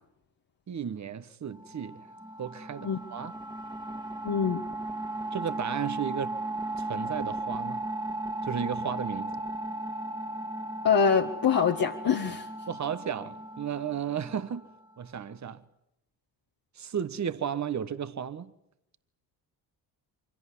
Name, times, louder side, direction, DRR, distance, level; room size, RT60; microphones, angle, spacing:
voice 1, 0.7-2.1 2.4-3.3 5.3-6.4 6.8-7.8 8.4-9.4 12.7-14.7 15.0-15.6 16.8-18.5, right 8 dB, 35° right, 1.3 m, -34 dB
sound 1, 1.5-15.0, right 2 dB, 10° right, 2.0 m, -36 dB
voice 2, 4.2-4.6 10.8-12.5, left 6 dB, 45° left, 1.7 m, -24 dB
24.5 x 17.0 x 9.9 m
hypercardioid pair, 45°, 48 cm